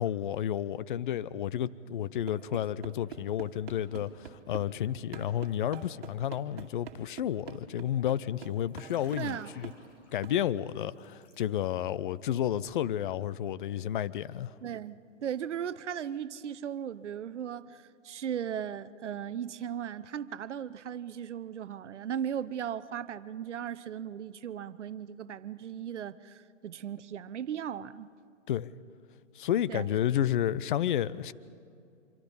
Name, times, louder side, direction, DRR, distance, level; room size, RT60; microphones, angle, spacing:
voice 1, 0.0-9.7 10.1-14.6 28.5-28.7 29.4-31.3, left 10 dB, 40° left, 0.6 m, -31 dB
sound 1, 2.3-4.7 5.1-9.4 9.6-9.8 10.2-10.4, right 8 dB, 50° right, 2.4 m, -45 dB
Liquid, 8.6-11.9 12.2-12.5, left 2 dB, 75° left, 6.3 m, -58 dB
voice 2, 9.2-9.6 14.6-28.1 29.7-29.9, right 9 dB, 65° right, 0.9 m, -37 dB
26.0 x 24.5 x 5.5 m
hypercardioid pair, 140°, 38 cm